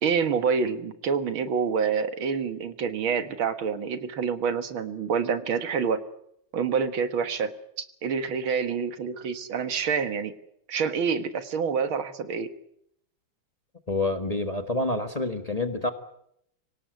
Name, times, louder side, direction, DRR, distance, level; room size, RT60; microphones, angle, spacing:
voice 1, 0.0-6.0 6.5-7.5 8.0-10.3 10.7-12.5, right 6 dB, 80° right, 11 dB, 2.3 m, -27 dB
voice 2, 13.9-15.9, left 2 dB, 20° left, 8 dB, 1.3 m, -27 dB
25.0 x 18.0 x 9.4 m, 0.75 s
omnidirectional pair, 2.2 m